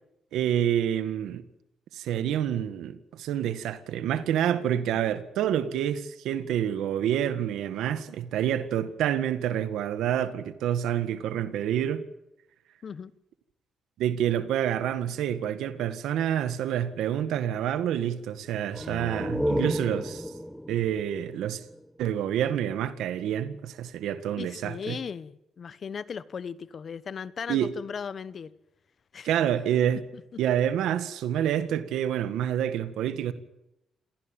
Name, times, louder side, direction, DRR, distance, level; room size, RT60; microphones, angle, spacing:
voice 1, 0.3-1.4 1.9-12.0 14.0-20.3 20.7-21.6 22.0-25.0 27.5-27.7 29.2-30.0 30.4-33.3, right 10 dB, 90° right, 1.8 m, -28 dB
sound 1, 18.7-22.2, equal, ahead, 1.6 m, -32 dB
voice 2, 24.4-28.5 29.1-29.3 30.1-30.2, left 6 dB, 50° left, 1.2 m, -37 dB
27.5 x 16.5 x 9.1 m
cardioid pair, 100°, 0 cm